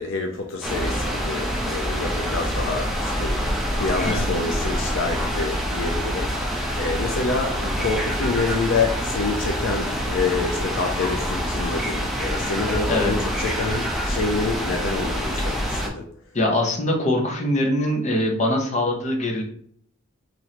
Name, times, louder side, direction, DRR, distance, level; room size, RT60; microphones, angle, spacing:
voice 1, 0.0-3.4 3.7-16.1, left 3 dB, 65° left, 3 dB, 0.5 m, -27 dB
sound 1, 0.6-15.9, equal, ahead, 0.6 m, -26 dB
voice 2, 16.3-19.4, left 1 dB, 35° left, 0 dB, 0.8 m, -22 dB
3.0 x 2.6 x 4.1 m, 0.62 s
head